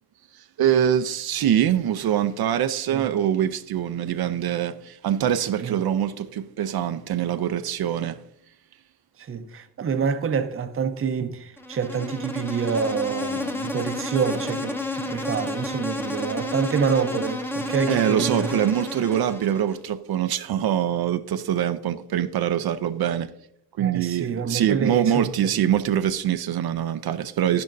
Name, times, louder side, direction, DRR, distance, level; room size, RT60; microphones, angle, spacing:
voice 1, 0.6-8.2 17.9-23.3 23.8-27.6, right 10 dB, 80° right, 0.6 m, -24 dB
voice 2, 9.2-18.5 23.8-25.5, right 6 dB, 35° right, 0.6 m, -27 dB
Insect, 11.6-19.8, left 2 dB, 5° left, 0.7 m, -31 dB
11.0 x 10.5 x 2.6 m
wide cardioid pair, 165°, 37 cm